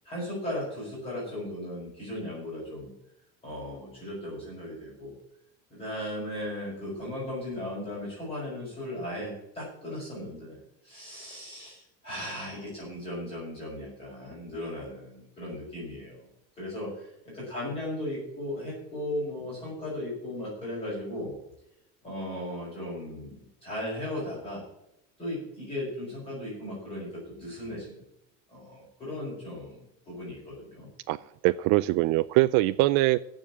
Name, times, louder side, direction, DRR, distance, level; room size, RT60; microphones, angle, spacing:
voice 1, 0.0-2.9 3.4-5.1 5.7-10.6 10.8-16.3 16.6-21.3 22.0-24.6 25.2-28.0 28.5-30.9, left 1 dB, 15° left, -6 dB, 5.7 m, -37 dB
voice 2, 31.1-33.2, right 18 dB, 55° right, 11 dB, 0.4 m, -23 dB
15.0 x 5.2 x 8.4 m, 0.83 s
cardioid pair, 170°, 32 cm